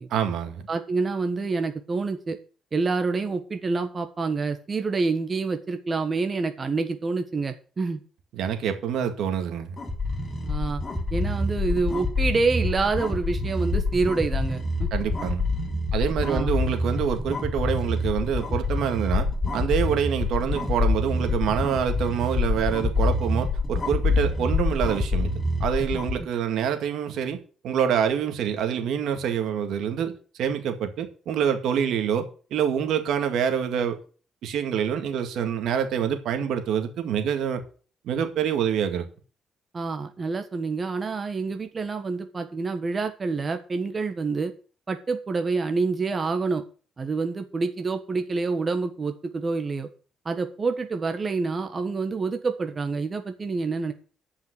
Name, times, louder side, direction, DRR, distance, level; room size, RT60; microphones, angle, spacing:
voice 1, 0.1-0.7 8.3-9.8 14.9-15.4 15.9-19.3 19.5-25.3 25.6-27.4 27.6-34.0 34.4-37.6 38.0-39.1, right 8 dB, 80° right, 2.0 m, -26 dB
voice 2, 0.7-2.4 2.7-8.0 10.4-10.8 11.1-14.9 16.3-16.5 39.7-44.5 44.9-46.6 47.0-49.9 50.2-53.9, right 4 dB, 35° right, 1.3 m, -27 dB
sound 1, 9.8-26.2, left 3 dB, 25° left, 4.1 m, -26 dB
10.0 x 5.7 x 8.2 m
cardioid pair, 90°, 0 cm